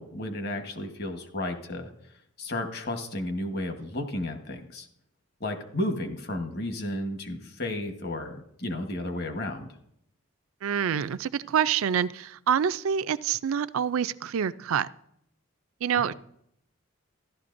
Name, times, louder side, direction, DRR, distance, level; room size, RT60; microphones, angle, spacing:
voice 1, 0.0-1.9 2.4-4.9 5.4-9.7, left 1 dB, 50° left, 5 dB, 1.2 m, -33 dB
voice 2, 10.6-14.9 15.8-16.1, right 8 dB, 75° right, 15 dB, 0.4 m, -26 dB
14.5 x 12.0 x 2.6 m, 0.74 s
head